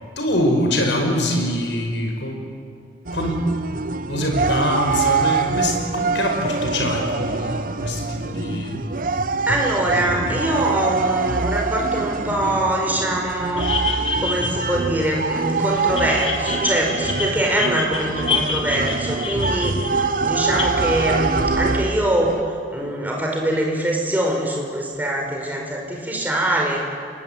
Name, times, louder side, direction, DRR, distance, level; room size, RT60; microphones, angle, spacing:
voice 1, 0.2-2.4 3.1-3.4 4.1-8.8 9.9-10.4, left 1 dB, 75° left, 3 dB, 5.3 m, -24 dB
sound 1, 3.0-22.4, right 4 dB, 45° right, 0.8 m, -24 dB
voice 2, 9.5-13.7 14.2-22.4 22.7-26.8, right 1 dB, 10° right, 0 dB, 4.8 m, -23 dB
sound 2, 13.6-15.4 15.8-20.7, left 4 dB, 30° left, 2.8 m, -28 dB
30.0 x 21.5 x 8.9 m, 2.4 s
head